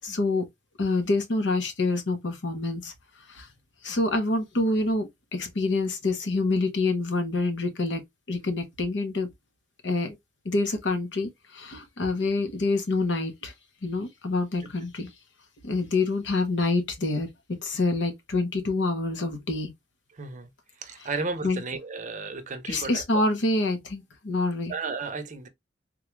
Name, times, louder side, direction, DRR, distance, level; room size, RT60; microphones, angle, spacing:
voice 1, 0.0-0.4 0.8-2.9 3.3-3.5 3.8-8.0 8.3-9.3 9.8-10.2 10.4-13.5 13.8-15.1 15.6-19.7 21.4-21.6 22.7-24.7, left 2 dB, 70° left, 0.9 m, -27 dB
voice 2, 20.1-20.5 20.8-23.0 24.7-25.5, right 4 dB, 40° right, 0.6 m, -33 dB
3.7 x 2.3 x 3.0 m
head